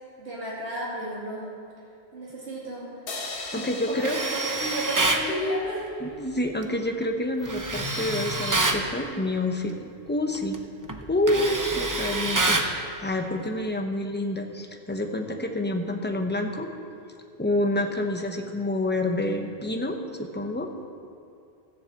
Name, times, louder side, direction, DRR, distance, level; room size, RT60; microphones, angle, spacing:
voice 1, 0.2-1.6 2.1-3.2 3.5-5.9 11.3-11.6 17.7-17.9, right 1 dB, 80° right, -7 dB, 2.9 m, -33 dB
sound 1, 3.1-6.4, left 3 dB, 60° left, 1.2 m, -40 dB
voice 2, 3.5-4.2 6.0-9.7 10.1-10.6 11.1-16.7 17.4-20.7, left 1 dB, 10° left, 4 dB, 0.7 m, -28 dB
Tools, 4.0-5.3 7.5-8.8 10.3-10.6 10.9-12.8, right 2 dB, 20° right, 0.6 m, -26 dB
13.5 x 7.2 x 7.6 m, 2.6 s
omnidirectional pair, 1.1 m